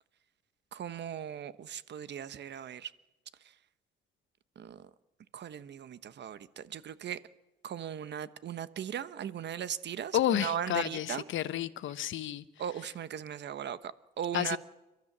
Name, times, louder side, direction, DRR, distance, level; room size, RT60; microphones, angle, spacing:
voice 1, 0.7-2.9 4.6-4.8 5.3-7.2 7.6-11.2 12.6-13.9 14.2-14.6, right 9 dB, 60° right, 1.2 m, -38 dB
voice 2, 10.1-12.4 14.3-14.6, left 11 dB, 75° left, 1.0 m, -31 dB
30.0 x 13.0 x 7.4 m
cardioid pair, 90°, 20 cm